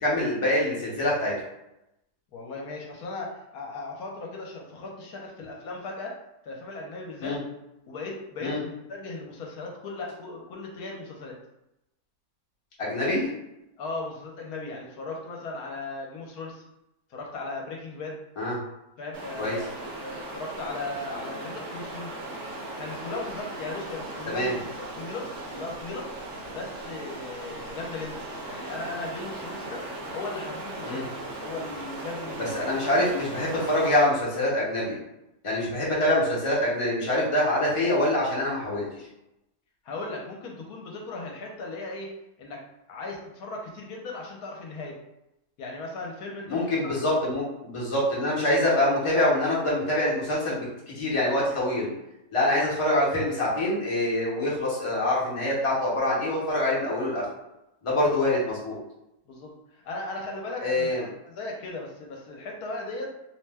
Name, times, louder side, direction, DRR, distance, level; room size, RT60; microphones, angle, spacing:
voice 1, 0.0-1.3 7.2-7.4 8.4-8.6 12.8-13.3 18.4-18.6 19.4-19.6 24.3-24.6 30.8-31.1 32.4-35.0 35.4-38.9 46.5-51.9 52.3-57.3 57.8-58.8 60.6-61.1, left 1 dB, 30° left, -6 dB, 0.6 m, -25 dB
voice 2, 2.3-7.4 7.9-11.4 13.0-13.1 13.8-16.6 17.1-18.2 19.0-22.1 22.8-26.1 26.5-29.8 30.1-32.8 39.8-42.1 42.4-42.6 42.9-45.0 45.6-47.0 52.5-52.6 58.0-58.1 59.3-63.1, left 3 dB, 70° left, -1 dB, 1.1 m, -37 dB
Stream, 19.1-34.2, right 2 dB, 55° right, 1.0 m, -38 dB
2.8 x 2.1 x 3.3 m, 0.89 s
omnidirectional pair, 1.7 m